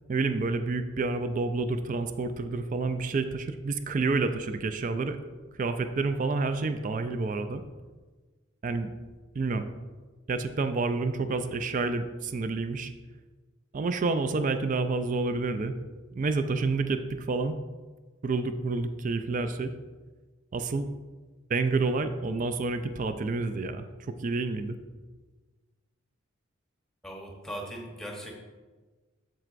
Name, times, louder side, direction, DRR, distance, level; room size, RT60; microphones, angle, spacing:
voice 1, 0.1-5.2 5.6-7.6 8.6-8.9 9.3-9.7 10.3-12.9 13.7-15.7 16.1-17.6 18.2-19.7 20.5-20.9 21.5-23.9 24.2-24.8, right 3 dB, 40° right, 9 dB, 0.4 m, -29 dB
voice 2, 27.0-28.4, equal, 5° left, -1 dB, 1.0 m, -39 dB
7.9 x 7.6 x 2.5 m, 1.3 s
head